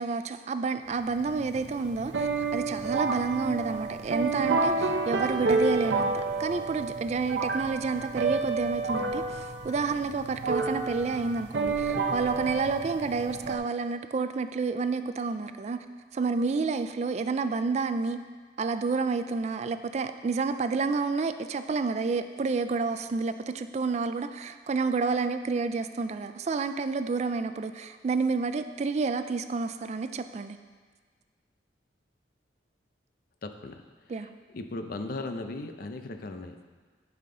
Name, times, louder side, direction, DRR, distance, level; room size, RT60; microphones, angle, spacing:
voice 1, 0.0-15.8 16.1-18.2 18.6-30.6 34.1-34.3, right 4 dB, 40° right, 10 dB, 0.3 m, -29 dB
sound 1, 1.0-13.6, right 3 dB, 75° right, 0.7 m, -30 dB
voice 2, 33.4-33.8 34.2-34.3 34.5-36.7, left 2 dB, 55° left, 7 dB, 0.6 m, -37 dB
11.0 x 5.7 x 3.8 m, 1.5 s
head